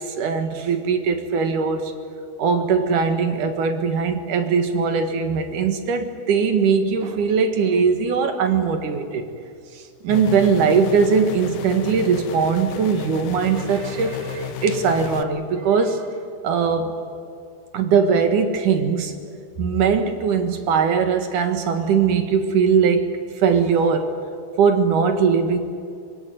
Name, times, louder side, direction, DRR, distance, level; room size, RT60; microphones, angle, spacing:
voice 1, 0.0-1.9 2.4-9.3 9.7-16.1 16.4-16.9 17.7-19.1 19.6-23.1 23.4-24.1 24.6-25.6, right 6 dB, 60° right, 7 dB, 3.0 m, -20 dB
sound 1, 10.1-15.2, left 10 dB, 70° left, 2.1 m, -33 dB
25.0 x 21.5 x 9.3 m, 2.4 s
omnidirectional pair, 4.5 m